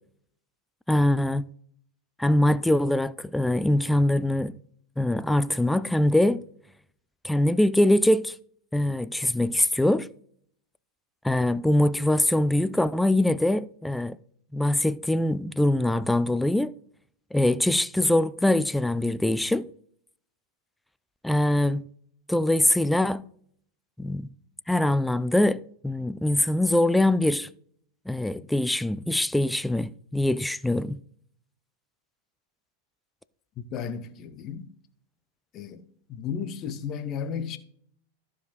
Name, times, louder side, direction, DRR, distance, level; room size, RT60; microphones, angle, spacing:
voice 1, 0.9-1.5 2.2-4.6 5.0-6.4 7.2-8.3 8.7-10.1 11.2-14.2 14.5-16.7 17.3-19.7 21.2-21.8 22.3-23.2 24.0-24.3 24.7-27.5 28.1-31.0, left 1 dB, 5° left, 0.3 m, -23 dB
voice 2, 33.6-34.7 35.5-37.6, left 7 dB, 35° left, 0.9 m, -34 dB
14.5 x 5.0 x 4.0 m
figure-of-eight pair, 90°, 0 cm